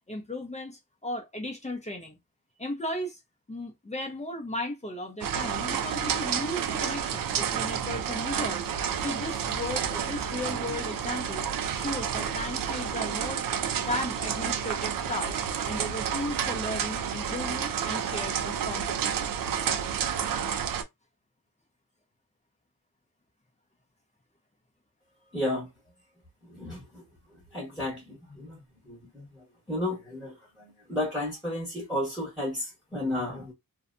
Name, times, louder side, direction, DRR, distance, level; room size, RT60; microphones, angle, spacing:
voice 1, 0.1-2.2 2.6-3.2 3.5-8.7 9.0-13.4 13.8-15.4 15.6-19.3, left 1 dB, 20° left, 0.6 m, -36 dB
sound 1, 5.2-20.8, right 8 dB, 65° right, 0.5 m, -30 dB
voice 2, 25.3-25.7 26.4-33.5, left 1 dB, ahead, 1.1 m, -33 dB
2.7 x 2.2 x 2.5 m
wide cardioid pair, 135°, 36 cm